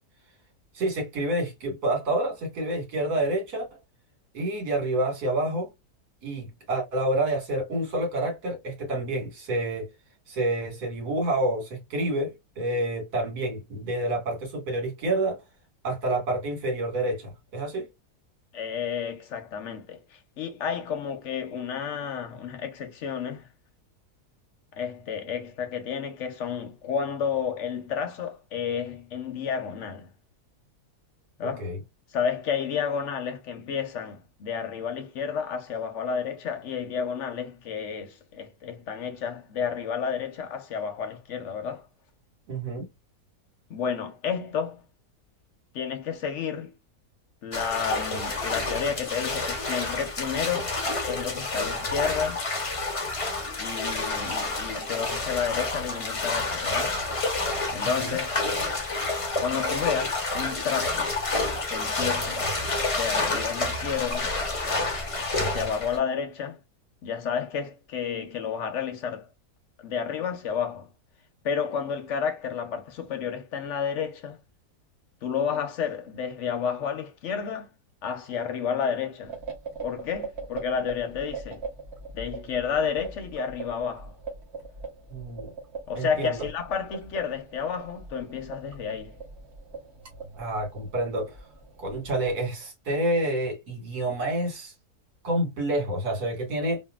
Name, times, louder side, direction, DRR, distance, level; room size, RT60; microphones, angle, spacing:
voice 1, 0.8-3.7 4.3-5.7 6.2-9.9 10.3-15.4 15.8-17.9 31.4-31.8 42.5-42.9 58.0-58.2 85.1-85.5 85.9-86.4 90.3-91.3 91.8-94.7 95.2-96.8, right 1 dB, 70° right, 2.1 m, -28 dB
voice 2, 18.5-23.5 24.7-30.1 31.4-31.7 32.1-41.9 43.7-44.8 45.7-46.7 47.4-50.7 51.1-52.4 53.6-56.9 57.7-58.4 59.4-61.1 61.7-62.5 63.0-64.3 65.3-66.6 67.0-69.3 69.8-70.9 71.4-74.4 75.2-77.7 78.0-79.4 79.8-81.6 82.1-84.1 85.9-89.2, left 7 dB, 60° left, 0.8 m, -31 dB
sound 1, 47.5-66.0, left 2 dB, 45° left, 0.4 m, -29 dB
sound 2, 79.2-92.3, right 4 dB, 45° right, 1.2 m, -41 dB
3.6 x 2.3 x 2.3 m
omnidirectional pair, 1.7 m